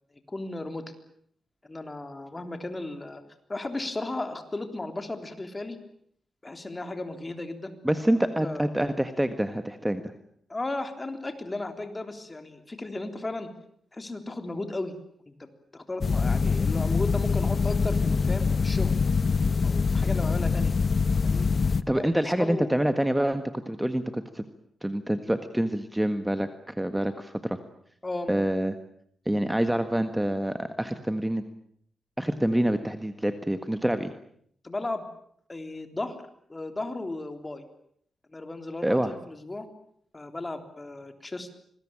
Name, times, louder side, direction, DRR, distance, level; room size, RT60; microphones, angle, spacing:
voice 1, 0.3-0.8 1.6-3.2 3.5-5.8 6.4-7.8 8.1-8.7 10.5-13.5 13.9-14.9 15.7-18.9 19.6-20.7 21.2-21.5 21.9-22.8 28.0-28.3 34.6-35.0 35.5-36.2 36.5-37.6 38.3-39.7 40.1-41.5, left 2 dB, 25° left, 7 dB, 3.6 m, -35 dB
voice 2, 7.8-10.1 20.0-20.1 21.9-24.4 24.8-27.6 28.3-28.8 29.2-31.4 32.2-34.1 38.8-39.1, right 1 dB, 5° right, 9 dB, 1.6 m, -26 dB
sound 1, 16.0-21.8, left 5 dB, 45° left, 1.0 m, -24 dB
26.5 x 21.0 x 8.8 m, 0.67 s
cardioid pair, 95°, 0 cm